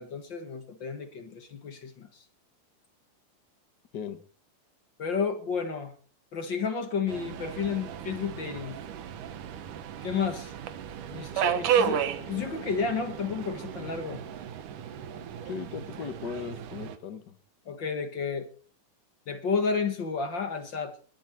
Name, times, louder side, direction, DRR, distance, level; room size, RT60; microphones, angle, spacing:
voice 1, 0.0-2.2 5.0-5.9 6.3-8.8 10.0-10.5 11.1-14.2 17.7-18.5 19.3-21.0, left 5 dB, 50° left, 1.5 m, -31 dB
Subway metro underground, 7.1-17.0, right 8 dB, 70° right, 2.6 m, -33 dB
voice 2, 15.4-17.4, left 6 dB, 75° left, 0.9 m, -37 dB
21.5 x 11.0 x 4.4 m
omnidirectional pair, 4.0 m